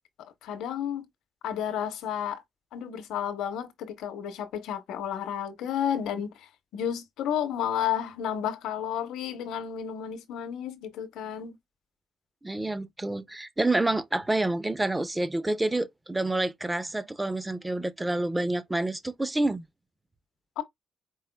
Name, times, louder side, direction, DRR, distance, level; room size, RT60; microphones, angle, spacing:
voice 1, 0.2-1.1 1.4-2.4 2.7-11.6 20.6-20.7, left 9 dB, 85° left, 0.8 m, -32 dB
voice 2, 12.4-19.6, right 2 dB, 15° right, 0.6 m, -28 dB
4.6 x 3.7 x 2.2 m
cardioid pair, 90°, 0 cm